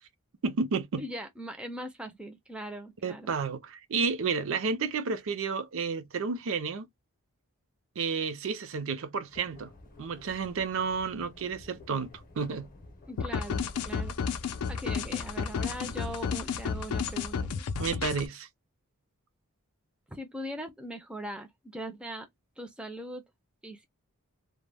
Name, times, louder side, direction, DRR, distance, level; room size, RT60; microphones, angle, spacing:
voice 1, 0.4-1.0 3.0-6.9 8.0-9.7 10.0-12.1 12.4-12.7 17.8-18.5, right 5 dB, 60° right, 0.5 m, -31 dB
voice 2, 1.0-3.4 13.1-14.2 14.7-17.6 20.1-22.3 22.6-23.2 23.6-23.9, right 1 dB, 5° right, 0.4 m, -40 dB
sound 1, 9.3-16.3, left 2 dB, 40° left, 0.7 m, -52 dB
sound 2, 13.2-18.3, left 6 dB, 80° left, 0.4 m, -32 dB
2.1 x 2.1 x 3.3 m
head